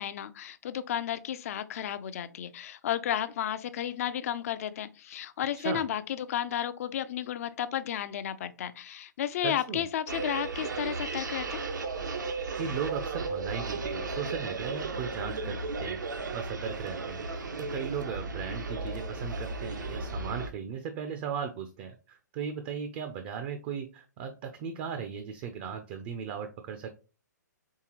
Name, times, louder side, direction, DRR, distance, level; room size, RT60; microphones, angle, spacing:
voice 1, 0.0-11.6, left 10 dB, 50° left, 0.4 m, -33 dB
voice 2, 9.4-9.8 12.5-26.9, right 7 dB, 35° right, 0.5 m, -37 dB
sound 1, 10.1-20.5, right 3 dB, 80° right, 0.7 m, -35 dB
4.6 x 3.3 x 2.9 m
figure-of-eight pair, 125°, 10 cm